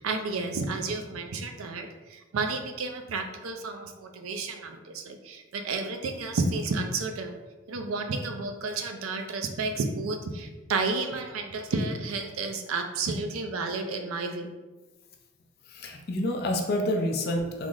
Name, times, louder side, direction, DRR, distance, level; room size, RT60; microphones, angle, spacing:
voice 1, 0.0-7.4 7.7-14.5, right 3 dB, 80° right, 5 dB, 0.4 m, -31 dB
voice 2, 15.7-17.7, left 1 dB, 50° left, 3 dB, 0.4 m, -28 dB
3.3 x 2.0 x 3.7 m, 1.2 s
head